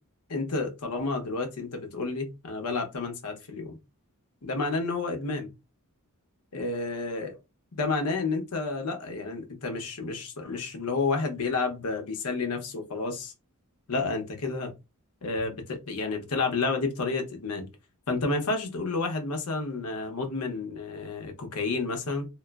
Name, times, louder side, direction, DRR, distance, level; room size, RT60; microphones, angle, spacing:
voice 1, 0.3-3.8 4.4-5.5 6.5-7.4 7.7-13.3 13.9-14.7 15.2-17.7 18.1-22.3, left 3 dB, 85° left, 0.8 m, -30 dB
3.0 x 2.0 x 2.3 m
head